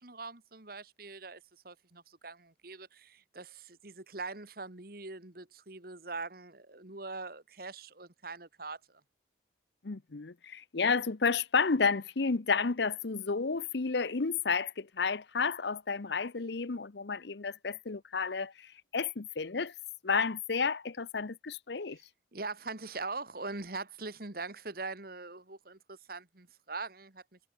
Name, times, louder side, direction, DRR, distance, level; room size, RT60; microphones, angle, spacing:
voice 1, 0.0-9.0 21.9-22.0 22.3-27.4, right 3 dB, 50° right, 2.0 m, -42 dB
voice 2, 9.8-19.7 20.0-22.0, left 5 dB, 65° left, 0.8 m, -31 dB
head